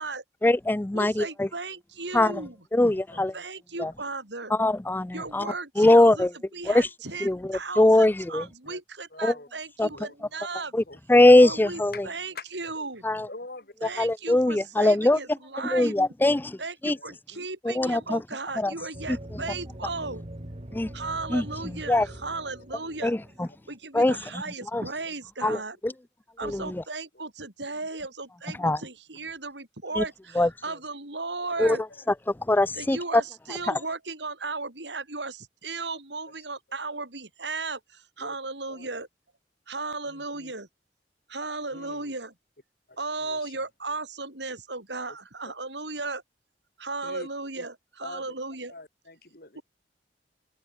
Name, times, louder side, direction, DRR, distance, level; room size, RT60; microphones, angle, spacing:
voice 1, 0.4-1.5 2.1-2.3 2.7-3.3 3.8-3.9 4.6-5.5 5.8-6.3 6.7-6.9 7.2-8.4 9.2-9.3 9.8-9.9 10.7-10.8 11.1-11.9 13.0-13.3 14.0-15.2 15.7-16.6 16.8-17.0 17.7-18.2 18.6-18.7 20.7-20.9 21.3-21.4 21.9-22.1 23.0-23.2 23.9-24.1 24.7-24.8 25.4-25.6 25.8-25.9 26.4-26.8 28.6-28.8 30.0-30.1 30.4-30.5 31.6-31.8 32.5-33.2, left 1 dB, 10° left, 0.4 m, -21 dB
voice 2, 0.9-2.7 3.3-4.6 5.1-10.7 11.4-13.0 13.8-16.0 16.6-20.2 20.9-23.2 23.7-25.8 26.4-31.8 32.7-39.1 39.7-40.7 41.3-42.3 43.0-46.2 46.8-48.7 49.5-49.6, right 3 dB, 90° right, 7.7 m, -36 dB
voice 3, 2.8-3.5 5.3-5.4 7.3-7.4 8.7-8.8 9.1-9.5 9.9-10.1 10.9-11.0 11.9-12.0 12.3-12.4 13.3-14.0 15.5-15.6 16.9-17.4 21.1-21.2 21.9-22.5 22.8-23.0 23.4-23.6 29.1-29.3 31.5-32.1 36.3-36.4 36.9-37.0 38.2-38.4 38.7-39.1 40.1-40.5 41.7-42.1 42.9-43.7 47.0-47.3 47.6-47.7 48.0-48.3 48.7-49.6, left 2 dB, 60° left, 6.9 m, -46 dB
sound 1, 18.9-23.7, right 1 dB, 35° right, 2.0 m, -42 dB
open air
head